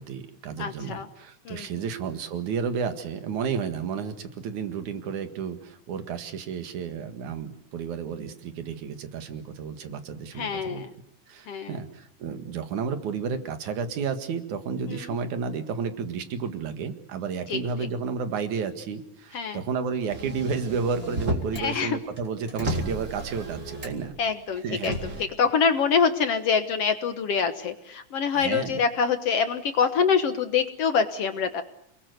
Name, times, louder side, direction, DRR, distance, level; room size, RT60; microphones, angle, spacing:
voice 1, 0.0-10.8 11.3-24.2 24.6-24.9 28.3-28.8, right 6 dB, 70° right, 8 dB, 3.2 m, -32 dB
voice 2, 0.6-1.1 1.5-1.8 10.4-10.9 11.5-11.8 14.9-15.0 17.5-17.9 19.3-19.6 21.5-22.0 24.2-25.0 25.4-31.6, left 6 dB, 60° left, 9 dB, 1.9 m, -25 dB
Motor vehicle (road), 20.1-21.7 22.0-24.2 24.8-25.2, right 1 dB, 25° right, 3.8 m, -32 dB
28.5 x 20.5 x 8.1 m, 0.72 s
omnidirectional pair, 3.7 m